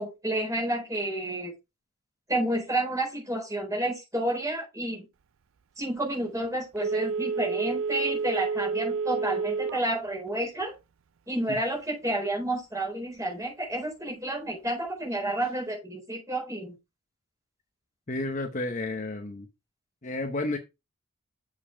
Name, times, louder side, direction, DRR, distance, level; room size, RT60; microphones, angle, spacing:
voice 1, 0.0-1.5 2.3-5.1 5.8-10.7 11.3-16.7, right 1 dB, 15° right, -2 dB, 4.6 m, -30 dB
Telephone, 6.8-9.9 10.3-10.4, right 5 dB, 65° right, 0.4 m, -29 dB
voice 2, 18.1-19.5 20.0-20.6, left 2 dB, 35° left, 5 dB, 0.9 m, -31 dB
7.1 x 5.5 x 4.9 m, 0.25 s
head